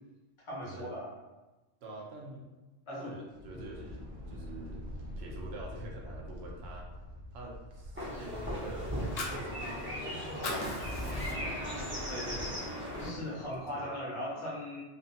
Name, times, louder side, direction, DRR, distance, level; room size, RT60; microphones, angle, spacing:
voice 1, 0.4-1.1 2.9-3.1 3.5-3.6 12.1-12.5 13.0-14.8, left 1 dB, 30° left, -5 dB, 0.6 m, -39 dB
voice 2, 1.8-2.5 3.0-4.8 5.2-6.9 7.3-10.6 10.9-12.0 13.0-13.9, right 2 dB, 65° right, -1 dB, 0.7 m, -47 dB
sound 1, 3.3-10.9, left 1 dB, 85° right, 1.0 m, -46 dB
sound 2, 8.0-13.1, equal, 15° right, 0.5 m, -37 dB
Fire, 8.9-10.1 10.3-11.7 12.1-12.2 12.6-13.6, left 2 dB, 70° left, 0.4 m, -40 dB
2.5 x 2.1 x 2.7 m, 1.1 s
omnidirectional pair, 1.3 m